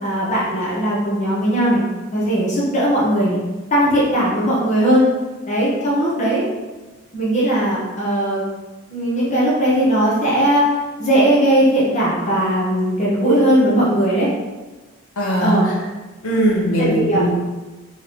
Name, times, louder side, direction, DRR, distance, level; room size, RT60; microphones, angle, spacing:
voice 1, 0.0-1.8 2.1-3.4 3.7-5.0 5.5-6.5 7.1-8.4 8.9-10.6 11.0-14.3 15.4-15.6 16.8-17.2, right 1 dB, 30° left, -7 dB, 1.0 m, -18 dB
voice 2, 15.2-15.7 16.2-17.4, equal, 80° left, -4 dB, 1.1 m, -19 dB
3.2 x 3.1 x 4.1 m, 1.2 s
head